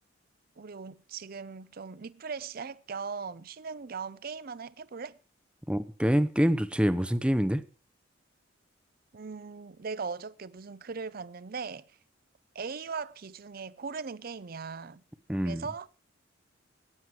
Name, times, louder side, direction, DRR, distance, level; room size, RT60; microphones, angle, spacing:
voice 1, 0.6-5.2 9.1-11.8 12.5-15.0 15.4-15.9, right 5 dB, 45° right, 0.5 m, -39 dB
voice 2, 5.7-7.6 15.3-15.6, equal, 5° right, 0.7 m, -26 dB
15.0 x 9.7 x 4.7 m
head